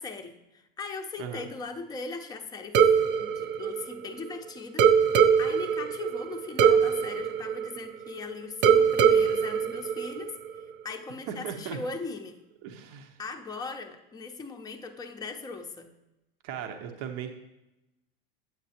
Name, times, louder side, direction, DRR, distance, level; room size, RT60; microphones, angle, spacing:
voice 1, 0.0-2.9 3.2-4.9 5.4-10.3 10.8-12.4 13.2-15.9, left 4 dB, 15° left, 4 dB, 0.7 m, -39 dB
sound 1, 2.7-4.3 4.8-8.2 8.6-10.6, right 7 dB, 35° right, 0.6 m, -22 dB
voice 2, 11.3-11.8 12.6-13.2 16.4-17.3, right 8 dB, 55° right, 5 dB, 1.0 m, -37 dB
8.1 x 8.1 x 2.9 m, 0.93 s
hypercardioid pair, 95°, 29 cm